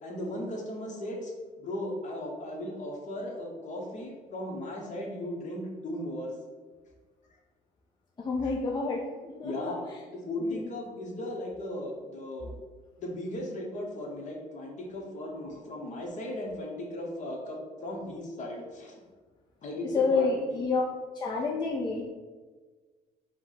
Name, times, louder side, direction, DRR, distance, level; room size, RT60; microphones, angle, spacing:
voice 1, 0.0-1.3 1.6-6.3 8.4-8.5 9.4-9.8 10.3-12.5 13.0-19.0 19.6-20.7, left 1 dB, 45° left, -1 dB, 1.0 m, -37 dB
voice 2, 8.2-10.0 10.4-10.7 19.9-20.8 21.1-22.0, left 4 dB, 25° left, -2 dB, 0.5 m, -29 dB
4.5 x 2.2 x 3.9 m, 1.4 s
cardioid pair, 110°, 17 cm